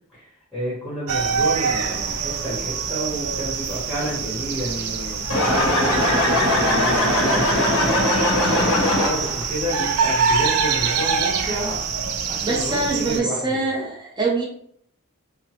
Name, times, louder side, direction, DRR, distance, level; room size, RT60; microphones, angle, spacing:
voice 1, 0.5-8.2 8.5-11.8 12.3-13.6, equal, 5° left, -8 dB, 0.9 m, -30 dB
sound 1, 1.1-13.2, right 6 dB, 85° right, 0.4 m, -25 dB
sound 2, 5.3-9.4, left 1 dB, 75° left, 0.8 m, -20 dB
voice 2, 8.4-8.8 12.4-14.4, right 3 dB, 20° right, -2 dB, 0.6 m, -25 dB
2.9 x 2.0 x 2.9 m, 0.65 s
head